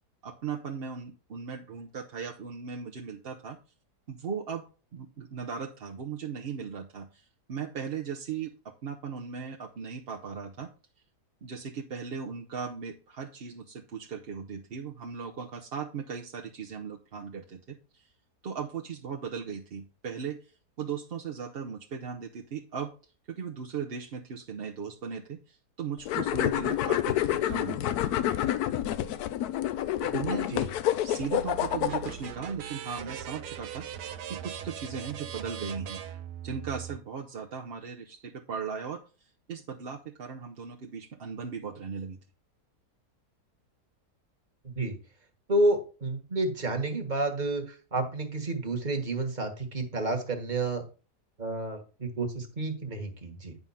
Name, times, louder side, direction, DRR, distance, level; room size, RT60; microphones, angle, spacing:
voice 1, 0.2-3.6 4.1-4.6 4.9-10.7 11.4-18.1 18.4-20.5 20.8-22.9 23.3-28.1 30.0-30.8 31.0-33.9 34.3-36.0 36.4-42.2, right 6 dB, 50° right, 1 dB, 0.7 m, -37 dB
sound 1, 26.1-32.3, left 12 dB, 75° left, 1.1 m, -28 dB
sound 2, 31.4-37.0, right 9 dB, 85° right, 1.3 m, -40 dB
voice 2, 44.6-44.9 45.5-50.8 51.4-53.6, right 2 dB, 30° right, 4 dB, 1.5 m, -30 dB
9.6 x 3.7 x 5.6 m, 0.36 s
omnidirectional pair, 1.7 m